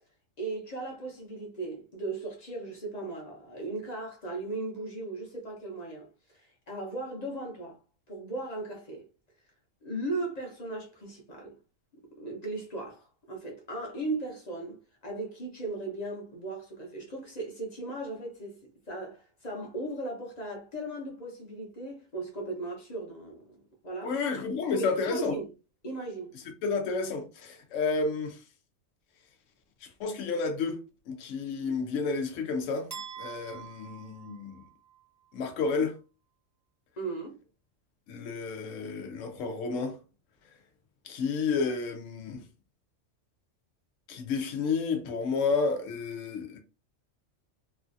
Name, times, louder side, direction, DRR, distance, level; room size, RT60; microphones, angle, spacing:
voice 1, 0.4-7.8 8.1-9.1 9.8-11.6 12.2-18.6 18.9-23.6 23.8-24.1 24.7-25.5 25.8-26.3 37.0-37.4, right 2 dB, 35° left, 0.9 m, -37 dB
voice 2, 24.0-25.4 26.6-28.4 29.8-30.8 31.1-32.9 33.2-34.6 35.3-35.9 38.1-40.0 41.0-42.4 44.1-46.6, left 4 dB, 75° left, 1.0 m, -31 dB
sound 1, 32.9-35.0, right 8 dB, 25° right, 0.6 m, -45 dB
3.1 x 2.4 x 2.5 m
omnidirectional pair, 1.3 m